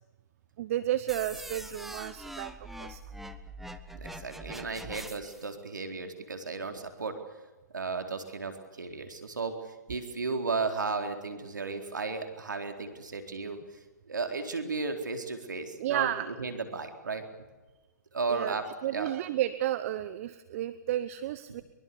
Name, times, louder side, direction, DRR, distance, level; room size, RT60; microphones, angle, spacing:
voice 1, 0.6-2.5 2.8-3.0 15.8-16.3 18.3-18.5 18.8-21.6, right 13 dB, 45° right, 13 dB, 1.1 m, -32 dB
sound 1, 1.1-5.5, right 1 dB, ahead, 1.3 m, -43 dB
voice 2, 4.0-7.2 7.7-9.6 9.9-13.6 14.1-16.1 16.4-17.2 18.1-19.1, right 4 dB, 85° right, 5 dB, 4.2 m, -34 dB
23.5 x 22.5 x 7.1 m, 1.2 s
hypercardioid pair, 130°, 10 cm